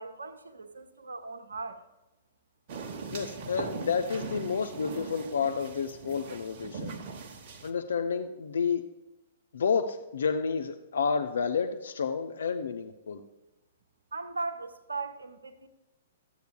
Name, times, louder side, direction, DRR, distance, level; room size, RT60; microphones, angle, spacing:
voice 1, 0.0-1.8 14.1-15.7, right 3 dB, 70° right, 0.7 m, -38 dB
sound 1, 2.7-7.7, right 4 dB, 40° right, 0.9 m, -40 dB
voice 2, 3.1-6.9 7.6-8.8 9.5-13.2, left 6 dB, 60° left, 0.5 m, -30 dB
14.0 x 8.0 x 2.2 m
figure-of-eight pair, 110°, 0 cm